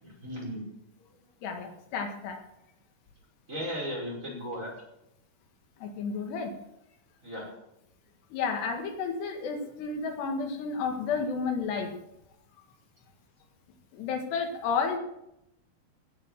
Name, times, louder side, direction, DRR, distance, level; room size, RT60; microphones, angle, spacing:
voice 1, 0.0-0.7 3.5-4.7 7.2-7.5, equal, 20° right, -3 dB, 5.7 m, -36 dB
voice 2, 1.4-2.4 5.8-6.5 8.3-11.9 13.9-15.0, left 5 dB, 85° left, 3 dB, 4.0 m, -31 dB
17.0 x 8.8 x 7.4 m, 0.83 s
omnidirectional pair, 4.7 m